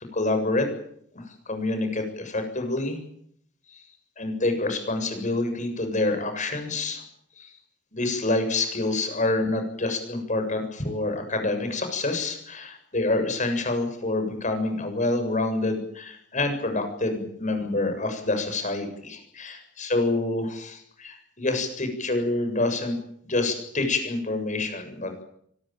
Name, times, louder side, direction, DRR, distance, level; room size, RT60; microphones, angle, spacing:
voice 1, 0.1-0.7 1.1-3.0 3.7-3.8 4.2-7.0 7.4-7.5 7.9-22.9 23.2-25.2, left 2 dB, 40° left, 7 dB, 7.4 m, -27 dB
24.5 x 20.5 x 9.1 m, 0.68 s
head